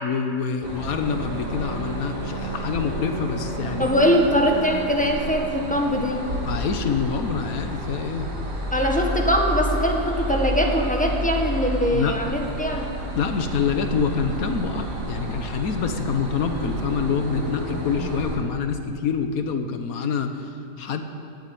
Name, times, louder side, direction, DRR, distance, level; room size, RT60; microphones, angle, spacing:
voice 1, 0.0-3.9 6.4-8.3 11.9-12.2 13.1-21.0, left 5 dB, 85° left, 7 dB, 1.5 m, -26 dB
sound 1, 0.6-18.4, right 1 dB, 70° right, 2.6 m, -30 dB
voice 2, 3.8-6.2 8.7-12.9, equal, 5° left, 1 dB, 1.6 m, -22 dB
18.0 x 8.1 x 9.1 m, 2.6 s
omnidirectional pair, 1.5 m